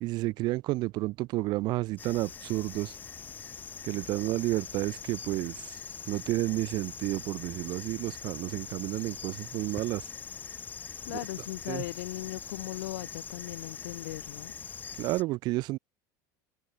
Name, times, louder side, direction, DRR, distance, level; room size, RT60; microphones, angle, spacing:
voice 1, 0.0-2.9 3.9-5.7 6.1-10.0 11.7-11.8 15.0-15.8, right 19 dB, 45° right, 1.6 m, -31 dB
sound 1, 2.0-15.2, left 6 dB, 20° left, 2.9 m, -43 dB
voice 2, 11.1-14.5, left 20 dB, 90° left, 2.4 m, -38 dB
cardioid pair, 160°, 10 cm